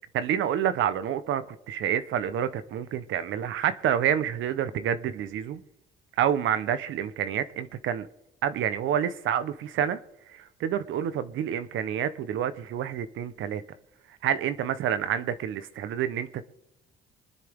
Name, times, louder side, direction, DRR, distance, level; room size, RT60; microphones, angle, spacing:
voice 1, 0.1-5.6 6.2-8.1 8.4-10.0 10.3-13.6 14.2-16.4, right 9 dB, 80° right, 1.0 m, -28 dB
25.0 x 10.0 x 3.6 m
cardioid pair, 90°, 20 cm